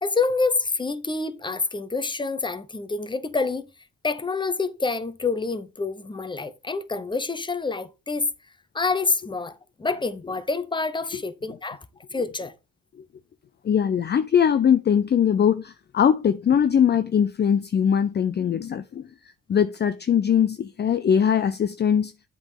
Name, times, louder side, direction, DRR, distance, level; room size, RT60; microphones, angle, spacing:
voice 1, 0.0-3.7 4.0-8.3 8.7-9.5 9.8-11.8 12.1-12.5, left 3 dB, 15° left, 0.9 m, -27 dB
voice 2, 13.6-19.1 19.5-22.1, left 8 dB, 35° left, 0.5 m, -21 dB
7.9 x 4.0 x 5.4 m
cardioid pair, 90°, 30 cm